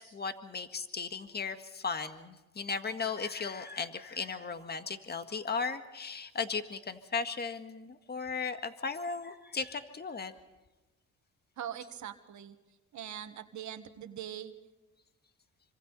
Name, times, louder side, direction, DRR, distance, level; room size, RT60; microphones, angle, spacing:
voice 1, 0.0-10.3, left 5 dB, 35° left, 8 dB, 1.8 m, -36 dB
voice 2, 11.6-12.5 12.9-14.5, right 10 dB, 70° right, 8 dB, 1.7 m, -42 dB
26.5 x 25.0 x 4.1 m, 1.1 s
cardioid pair, 90°, 30 cm